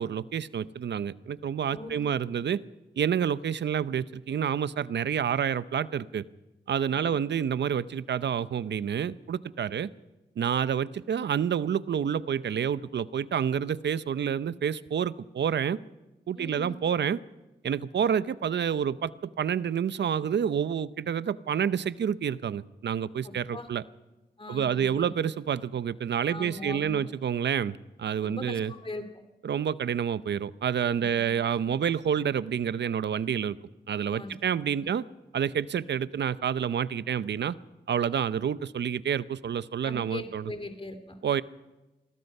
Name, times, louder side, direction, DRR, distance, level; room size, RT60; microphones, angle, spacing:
voice 1, 0.0-2.6 3.0-6.2 6.7-9.9 10.4-15.8 16.3-17.2 17.6-23.8 24.5-28.7 29.4-33.6 33.9-35.0 35.3-37.5 37.9-40.5 41.2-41.4, right 8 dB, 80° right, 16 dB, 0.7 m, -28 dB
voice 2, 1.7-2.0 2.3-2.4 6.9-7.1 16.4-16.7 23.2-23.7 24.4-25.1 26.3-27.1 28.2-29.0 31.0-31.3 34.1-34.3 34.8-34.9 39.8-41.2, left 2 dB, 30° left, 8 dB, 2.7 m, -40 dB
27.5 x 20.0 x 5.5 m, 1.1 s
cardioid pair, 40°, 18 cm